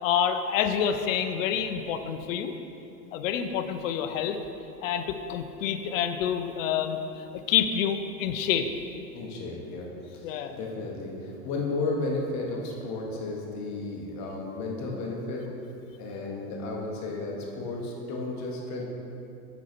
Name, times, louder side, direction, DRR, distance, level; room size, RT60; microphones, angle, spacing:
voice 1, 0.0-2.5 3.1-4.4 4.8-8.7 10.2-10.6, left 8 dB, 55° left, 8 dB, 0.7 m, -28 dB
voice 2, 9.1-15.5 16.0-18.8, left 2 dB, 35° left, -1 dB, 1.2 m, -33 dB
6.0 x 5.4 x 4.4 m, 2.8 s
hypercardioid pair, 110°, 48 cm